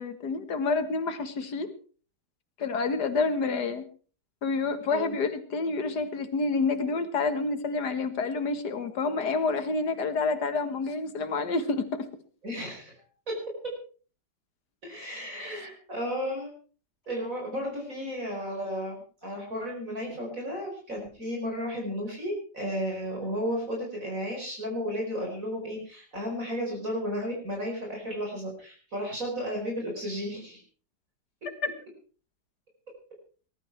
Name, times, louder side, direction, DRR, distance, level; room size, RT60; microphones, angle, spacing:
voice 1, 0.0-1.7 2.6-3.8 4.4-12.1, left 4 dB, 65° left, 8 dB, 2.2 m, -28 dB
voice 2, 12.4-12.9 14.8-16.5 17.1-30.6, equal, 45° right, 0 dB, 5.2 m, -33 dB
20.0 x 12.0 x 4.6 m, 0.40 s
omnidirectional pair, 1.9 m